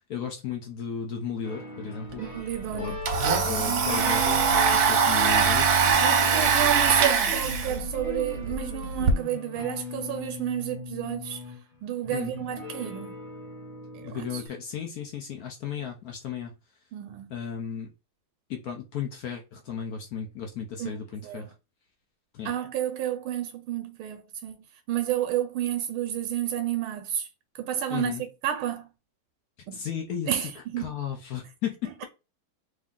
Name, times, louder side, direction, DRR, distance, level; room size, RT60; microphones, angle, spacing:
voice 1, 0.1-2.2 2.7-3.0 3.5-6.2 12.1-12.3 14.0-16.5 17.3-17.9 18.5-21.5 22.3-22.5 27.9-28.2 29.7-32.0, left 7 dB, 80° left, 0.8 m, -35 dB
sound 1, 1.4-14.5, left 4 dB, 30° left, 0.8 m, -40 dB
Domestic sounds home sounds, 2.1-2.2 2.5-9.1, right 5 dB, 60° right, 1.0 m, -23 dB
voice 2, 2.1-3.0 6.0-11.4 11.8-13.2 13.9-14.4 16.9-17.3 20.8-21.0 21.2-21.5 22.4-27.3 27.6-28.9 29.7-29.8 30.3-30.9, right 11 dB, 80° right, 1.4 m, -31 dB
3.4 x 2.6 x 3.6 m
omnidirectional pair, 2.3 m